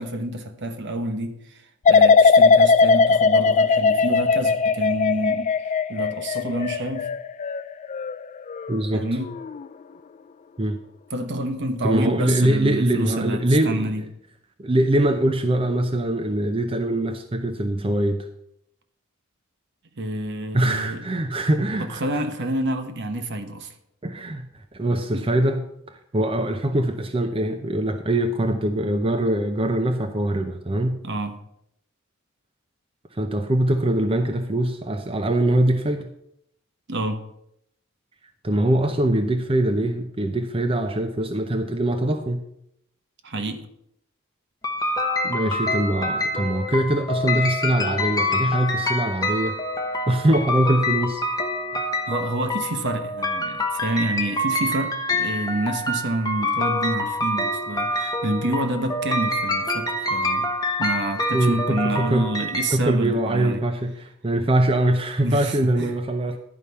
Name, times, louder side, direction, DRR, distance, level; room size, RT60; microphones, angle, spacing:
voice 1, 0.0-1.6 1.9-5.5 5.9-7.1 8.9-9.3 11.1-14.0 20.0-21.0 21.8-23.7 25.1-25.2 31.0-31.4 36.9-37.2 43.2-43.7 51.7-60.5 60.8-63.6 65.2-65.9, right 1 dB, 55° right, 1.1 m, -28 dB
sound 1, 1.9-8.8 9.2-9.6, left 4 dB, 35° left, 0.3 m, -19 dB
voice 2, 8.7-9.1 10.6-10.8 11.8-13.9 14.6-18.3 20.5-22.2 24.0-24.5 24.7-25.6 25.9-31.0 33.1-36.1 38.4-42.4 45.2-49.6 50.1-51.2 61.3-62.3 62.7-66.4, right 1 dB, 25° right, 0.6 m, -23 dB
sound 2, 44.6-62.7, left 1 dB, 20° left, 1.0 m, -26 dB
11.0 x 4.9 x 6.9 m
head